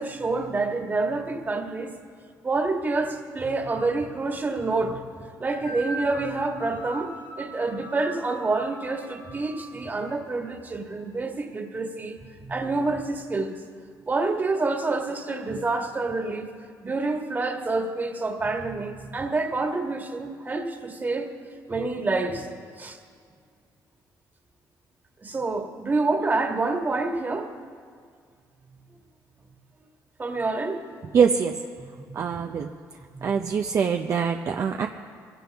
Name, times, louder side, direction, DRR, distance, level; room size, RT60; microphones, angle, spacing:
voice 1, 0.0-2.0 2.4-5.0 5.4-13.6 14.1-16.5 16.8-21.3 21.7-22.5 22.7-23.0 25.2-27.5 30.2-30.9 31.8-32.2 33.1-33.3, right 3 dB, 25° right, 3 dB, 1.7 m, -27 dB
sound 1, 5.5-10.5, right 1 dB, 65° left, 2.9 m, -41 dB
voice 2, 31.1-31.6 32.1-32.7 33.2-34.9, right 6 dB, 50° right, 4 dB, 0.7 m, -23 dB
24.5 x 16.5 x 3.5 m, 2.1 s
cardioid pair, 105°, 7 cm